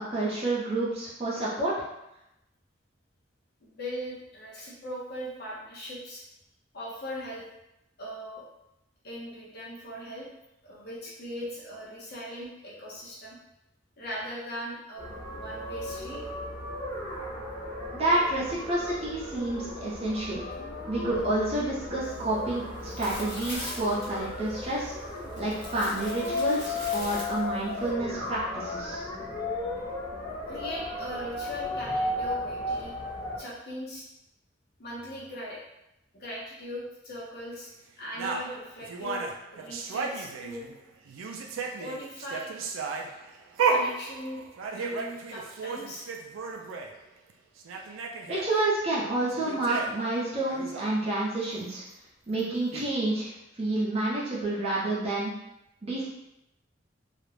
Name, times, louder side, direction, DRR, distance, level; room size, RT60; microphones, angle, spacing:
voice 1, 0.0-1.7 17.9-20.4 20.9-29.0 48.3-51.8 52.3-55.3 55.8-56.1, right 2 dB, 30° right, -7 dB, 0.6 m, -29 dB
voice 2, 3.6-6.2 6.7-7.4 8.0-8.4 9.0-10.3 10.6-13.4 14.0-16.2 29.6-29.7 30.4-32.9 33.4-34.1 34.8-35.6 36.1-37.7 38.0-40.7 41.8-42.6 43.7-44.4 44.7-46.1, equal, 55° left, -5 dB, 0.6 m, -39 dB
sound 1, 15.0-33.4, left 2 dB, 15° left, 0.7 m, -35 dB
sound 2, 22.0-27.9, left 1 dB, 80° left, 1.1 m, -42 dB
sound 3, 38.2-40.8 41.1-46.9 47.3-47.4 47.6-48.5 49.2-50.1 50.5-50.8 52.4-52.5 52.7-52.9, right 4 dB, 90° right, 0.4 m, -33 dB
2.4 x 2.0 x 3.1 m, 0.87 s
head